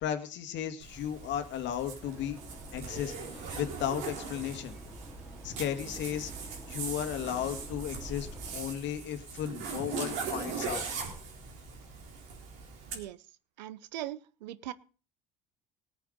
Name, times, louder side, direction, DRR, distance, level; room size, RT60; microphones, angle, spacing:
voice 1, 0.0-2.4 2.7-4.8 5.4-6.3 6.7-10.9, left 10 dB, 60° left, 8 dB, 2.0 m, -35 dB
Zipper (clothing), 0.8-13.0, right 5 dB, 65° right, 3.9 m, -40 dB
sound 1, 2.0-8.6, right 1 dB, 5° right, 4.0 m, -49 dB
voice 2, 13.6-14.7, right 13 dB, 85° right, 18 dB, 0.7 m, -40 dB
19.0 x 8.2 x 5.2 m, 0.39 s
hypercardioid pair, 70°, 21 cm